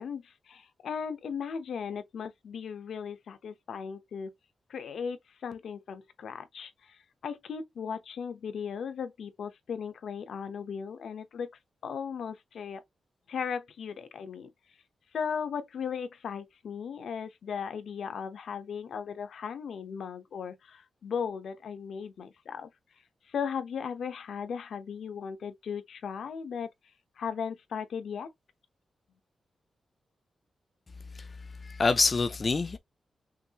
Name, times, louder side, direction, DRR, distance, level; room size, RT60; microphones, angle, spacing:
voice 1, 0.0-4.3 4.7-11.5 11.8-12.8 13.3-14.5 15.1-22.7 23.3-26.7 27.2-28.3, left 6 dB, 75° left, 0.8 m, -37 dB
voice 2, 31.6-32.8, left 4 dB, 30° left, 0.4 m, -26 dB
5.8 x 2.6 x 2.8 m
wide cardioid pair, 155°, 0 cm